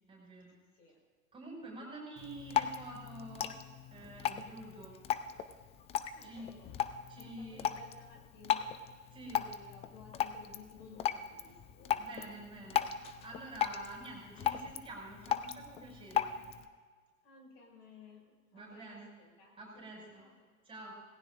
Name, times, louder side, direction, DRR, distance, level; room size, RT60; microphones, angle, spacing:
voice 1, 0.1-0.5 1.3-5.0 6.2-6.5 7.1-7.7 9.1-9.5 12.0-16.3 18.5-19.1 19.6-20.3 20.6-20.9, right 2 dB, 10° right, -1 dB, 5.8 m, -48 dB
Drip, 2.2-16.7, left 10 dB, 15° left, 0.5 m, -37 dB
voice 2, 5.9-6.8 7.1-9.1 9.5-12.3 17.2-20.5, left 5 dB, 45° left, 0 dB, 5.7 m, -57 dB
27.0 x 19.0 x 2.5 m, 1.5 s
figure-of-eight pair, 95°, 42 cm